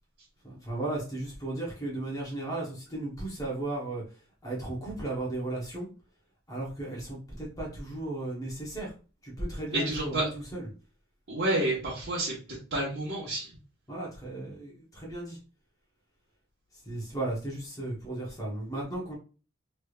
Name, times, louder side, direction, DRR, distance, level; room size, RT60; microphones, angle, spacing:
voice 1, 0.4-4.0 4.4-5.9 6.5-8.9 9.2-10.6 13.9-15.4 16.9-19.1, right 2 dB, 20° left, -4 dB, 1.0 m, -35 dB
voice 2, 9.7-10.3 11.3-13.5, right 1 dB, 60° right, -8 dB, 1.2 m, -30 dB
3.3 x 3.2 x 2.4 m, 0.36 s
head